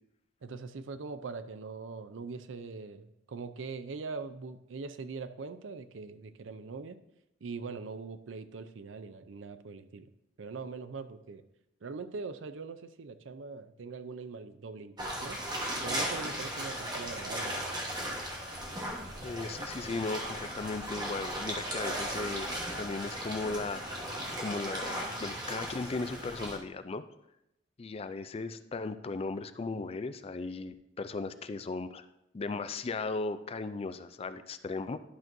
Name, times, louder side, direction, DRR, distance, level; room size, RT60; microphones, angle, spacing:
voice 1, 0.4-7.0 7.4-10.1 10.4-11.4 11.8-15.4 15.8-17.7, right 4 dB, 80° right, 11 dB, 0.5 m, -42 dB
sound 1, 15.0-26.6, equal, 25° right, 1.3 m, -37 dB
voice 2, 19.2-22.5 22.8-23.8 24.4-27.0 27.8-32.1 32.3-35.0, left 3 dB, 30° left, 11 dB, 0.4 m, -36 dB
11.5 x 6.0 x 2.6 m, 0.83 s
head